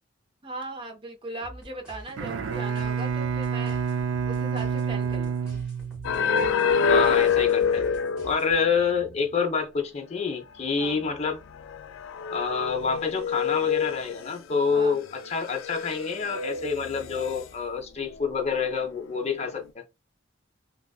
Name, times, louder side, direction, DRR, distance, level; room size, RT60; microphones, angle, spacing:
voice 1, 0.4-5.6 10.8-11.0 14.7-15.0, right 2 dB, 25° right, 0.6 m, -39 dB
sound 1, 1.4-8.8, equal, 5° right, 1.1 m, -47 dB
Bowed string instrument, 2.1-6.4, right 6 dB, 70° right, 0.4 m, -29 dB
sound 2, 6.0-8.7 9.0-9.1 10.8-10.9 11.5-14.6 15.1-17.4 18.4-19.0 19.3-19.6, left 6 dB, 85° left, 0.3 m, -26 dB
voice 2, 6.9-7.9 8.2-11.4 12.3-19.8, left 5 dB, 35° left, 0.5 m, -27 dB
2.4 x 2.3 x 2.3 m
head